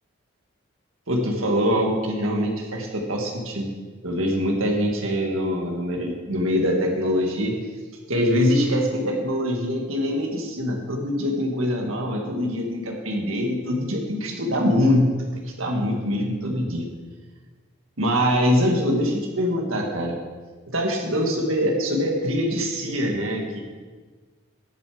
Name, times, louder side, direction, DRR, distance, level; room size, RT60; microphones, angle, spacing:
voice 1, 1.1-3.7 4.0-7.6 8.1-16.9 18.0-20.2 20.7-23.6, equal, 85° right, 1 dB, 1.9 m, -24 dB
11.0 x 7.0 x 5.0 m, 1.4 s
head